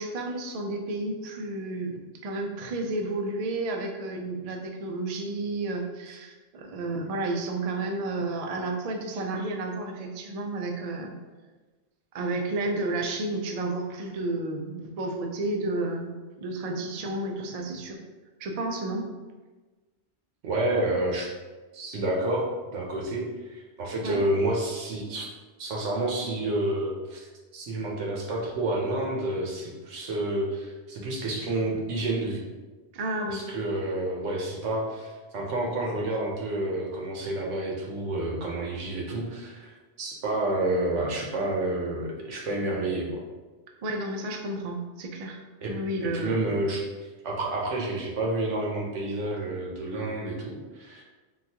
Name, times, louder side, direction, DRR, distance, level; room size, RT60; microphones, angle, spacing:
voice 1, 0.0-11.1 12.1-16.1 16.4-18.0 18.4-19.1 24.0-24.2 32.9-33.4 43.8-45.4 45.7-46.4, right 2 dB, 75° right, 2 dB, 0.3 m, -31 dB
voice 2, 20.4-21.3 21.7-25.3 25.6-32.4 33.3-43.1 45.6-45.7 46.0-46.8 47.2-51.0, right 2 dB, 90° right, -2 dB, 1.1 m, -29 dB
3.8 x 2.3 x 2.7 m, 1.3 s
omnidirectional pair, 1.2 m